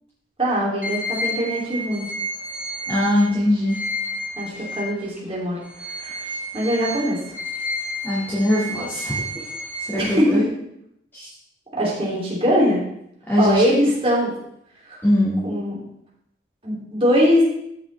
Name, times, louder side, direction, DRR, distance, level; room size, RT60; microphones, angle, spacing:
voice 1, 0.4-2.1 4.3-5.6 6.0-6.2 6.5-7.2 10.0-10.4 11.8-12.8 13.4-14.3 14.9-15.0 15.4-15.8 16.6-17.4, equal, 30° right, -5 dB, 2.8 m, -21 dB
sound 1, 0.8-5.2 5.6-10.5, left 1 dB, 10° right, 1.0 m, -31 dB
voice 2, 2.9-3.8 8.0-9.2 9.9-10.5 11.1-11.3 13.3-13.6 15.0-15.4, left 1 dB, 10° left, -9 dB, 2.0 m, -21 dB
13.5 x 5.8 x 3.3 m, 0.77 s
head